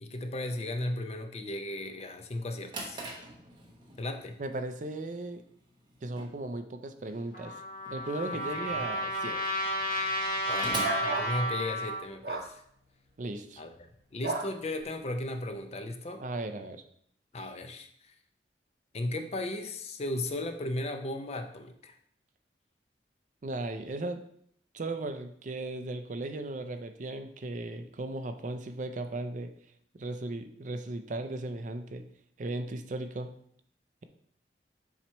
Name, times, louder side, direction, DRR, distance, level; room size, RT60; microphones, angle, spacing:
voice 1, 0.0-3.0 4.0-4.4 8.5-8.9 10.5-12.6 13.6-16.2 17.3-18.1 18.9-22.0, left 1 dB, 35° left, 6 dB, 0.6 m, -36 dB
Drawer open or close, 2.4-12.1, right 2 dB, 25° right, 1.0 m, -45 dB
voice 2, 4.4-5.4 6.0-7.5 7.9-9.4 13.2-13.6 16.2-16.8 23.4-24.2 24.7-29.5 30.0-32.0 32.4-33.3, right 2 dB, 45° right, 8 dB, 0.5 m, -36 dB
Trumpet, 7.3-12.0, equal, 55° left, 1.7 m, -32 dB
sound 1, 10.8-11.3 12.2-12.5 14.2-14.5, right 3 dB, 65° right, 1.2 m, -33 dB
7.2 x 3.0 x 4.4 m, 0.64 s
head